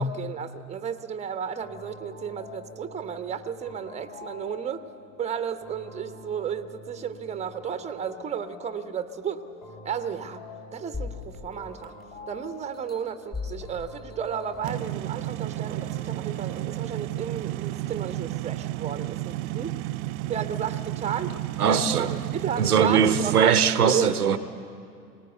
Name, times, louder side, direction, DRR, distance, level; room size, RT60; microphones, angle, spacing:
voice 1, 0.0-4.8 5.2-9.4 9.8-10.4 10.7-11.9 12.3-19.8 20.3-21.3 21.7-24.2, right 8 dB, 15° right, 0.9 m, -33 dB
sound 1, 1.4-17.2, left 1 dB, 45° left, 4.1 m, -46 dB
sound 2, 10.9-12.2 12.7-14.9 15.4-15.5, left 5 dB, 20° left, 2.3 m, -39 dB
sound 3, 14.6-23.4, right 16 dB, 30° right, 0.4 m, -32 dB
voice 2, 21.6-22.1 22.6-24.4, right 7 dB, 80° right, 0.9 m, -21 dB
21.0 x 19.0 x 7.9 m
figure-of-eight pair, 75°, 45 cm